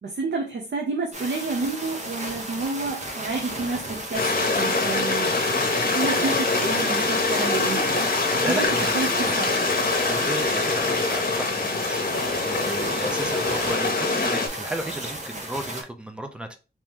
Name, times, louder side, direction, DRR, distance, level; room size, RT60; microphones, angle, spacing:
voice 1, 0.0-5.4 5.9-8.1 8.4-9.6, right 3 dB, 80° right, 0.7 m, -30 dB
sound 1, 1.1-15.8, right 1 dB, 40° right, 1.1 m, -35 dB
Stream, 4.1-14.5, left 3 dB, 55° left, 0.9 m, -24 dB
voice 2, 8.4-9.5 10.0-16.5, right 1 dB, 5° right, 0.6 m, -34 dB
3.0 x 3.0 x 3.5 m
wide cardioid pair, 110°, 18 cm